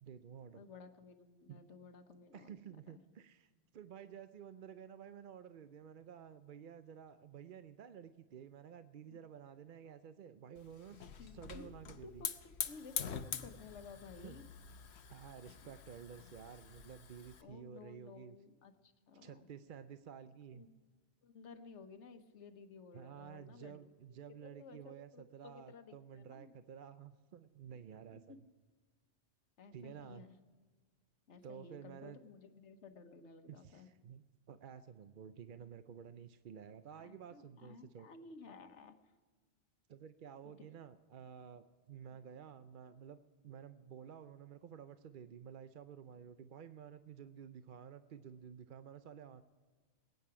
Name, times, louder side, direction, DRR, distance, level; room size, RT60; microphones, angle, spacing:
voice 1, 0.0-0.6 1.5-1.6 2.3-12.3 14.2-14.4 15.1-18.4 19.2-20.7 22.9-28.4 29.7-30.3 31.4-32.2 33.5-38.1 39.9-49.4, right 8 dB, 55° right, 11 dB, 0.6 m, -52 dB
voice 2, 0.5-3.0 9.1-9.2 11.2-11.7 12.0-14.4 15.6-15.7 17.4-19.5 20.5-20.7 21.2-23.8 24.3-26.5 28.1-28.4 29.6-30.4 31.3-33.9 36.9-39.1 40.4-40.7, left 4 dB, 85° left, 8 dB, 1.3 m, -55 dB
Hiss / Fire, 10.6-17.4, left 7 dB, 70° left, 1.0 m, -45 dB
21.0 x 9.4 x 4.8 m, 1.5 s
omnidirectional pair, 1.2 m